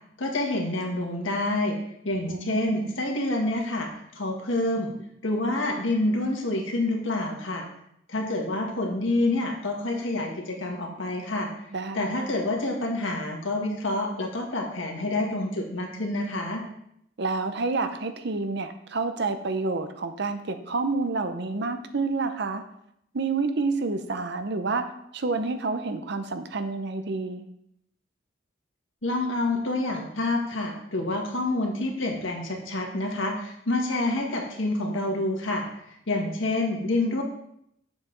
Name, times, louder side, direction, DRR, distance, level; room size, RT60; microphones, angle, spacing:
voice 1, 0.2-1.8 2.0-5.0 5.2-7.7 8.1-11.5 11.9-16.6 29.0-35.6 36.1-37.2, left 2 dB, 80° left, 1 dB, 1.7 m, -27 dB
voice 2, 2.3-2.9 11.7-12.3 17.2-22.6 23.1-27.4, right 3 dB, 60° right, 9 dB, 0.7 m, -29 dB
8.1 x 7.1 x 3.9 m, 0.75 s
head